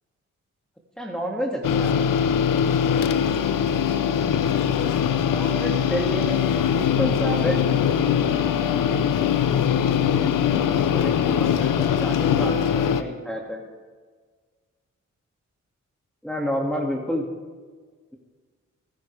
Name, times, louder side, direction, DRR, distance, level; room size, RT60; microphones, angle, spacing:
voice 1, 1.0-2.1 5.2-6.5 6.7-7.7 10.2-10.3 10.9-13.6 16.2-17.3, equal, ahead, -2 dB, 2.3 m, -29 dB
sound 1, 1.6-13.0, left 8 dB, 85° left, 0.9 m, -22 dB
27.0 x 10.5 x 3.5 m, 1.5 s
cardioid pair, 50°, 32 cm